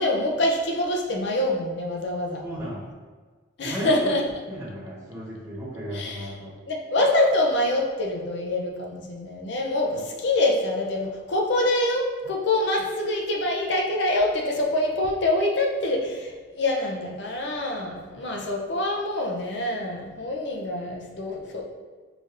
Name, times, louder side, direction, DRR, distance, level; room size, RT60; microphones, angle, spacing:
voice 1, 0.0-2.4 3.6-4.2 5.9-6.3 6.7-21.6, left 1 dB, 55° left, 0 dB, 0.5 m, -25 dB
voice 2, 2.4-2.9 3.6-4.1 4.5-6.5, equal, 10° right, -9 dB, 1.1 m, -34 dB
4.9 x 2.7 x 2.5 m, 1.4 s
head